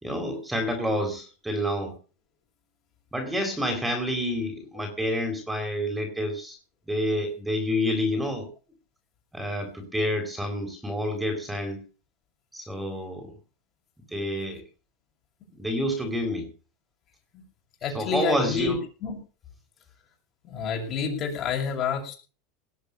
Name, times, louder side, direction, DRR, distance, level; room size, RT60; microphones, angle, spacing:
voice 1, 0.0-1.9 3.1-6.6 6.9-8.5 9.3-11.8 12.5-13.3 14.1-14.6 15.6-16.5 17.9-18.8, equal, 5° right, 5 dB, 3.9 m, -28 dB
voice 2, 17.8-19.2 20.4-22.1, left 5 dB, 40° left, 1 dB, 7.0 m, -28 dB
19.0 x 7.9 x 7.0 m, 0.36 s
supercardioid pair, 135°, 0 cm